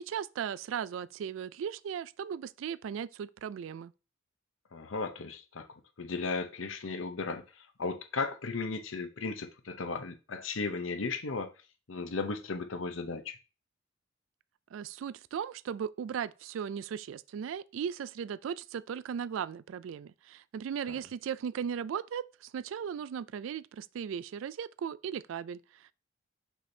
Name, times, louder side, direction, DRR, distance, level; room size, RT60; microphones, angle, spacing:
voice 1, 0.0-3.9 14.7-25.9, right 8 dB, 80° right, 0.3 m, -37 dB
voice 2, 4.7-5.7 6.0-11.5 11.9-13.4 20.9-21.0, left 4 dB, 85° left, 0.7 m, -35 dB
6.0 x 5.8 x 2.7 m
head